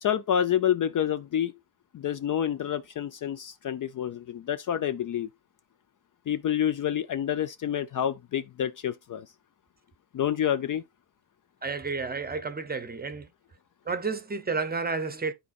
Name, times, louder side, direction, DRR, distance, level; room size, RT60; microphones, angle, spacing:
voice 1, 0.0-1.5 1.9-5.3 6.3-9.3 10.1-10.8, left 9 dB, 45° left, 0.5 m, -28 dB
voice 2, 11.6-13.3 13.9-15.3, right 4 dB, 20° right, 0.7 m, -31 dB
12.5 x 4.2 x 2.4 m
cardioid pair, 125°, 48 cm